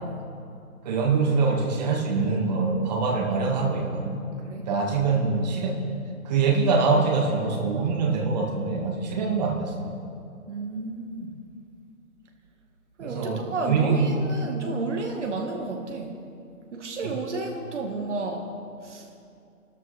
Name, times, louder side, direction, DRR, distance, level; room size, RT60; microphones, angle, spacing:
voice 1, 0.8-4.2 4.6-5.8 6.2-9.9 13.0-14.4 17.0-17.2, right 4 dB, 30° right, 0 dB, 1.8 m, -24 dB
voice 2, 10.5-11.3 13.0-16.2 16.7-18.5 18.8-19.1, right 3 dB, 50° right, 2 dB, 1.6 m, -32 dB
28.5 x 13.0 x 3.3 m, 2.5 s
hypercardioid pair, 155°, 45 cm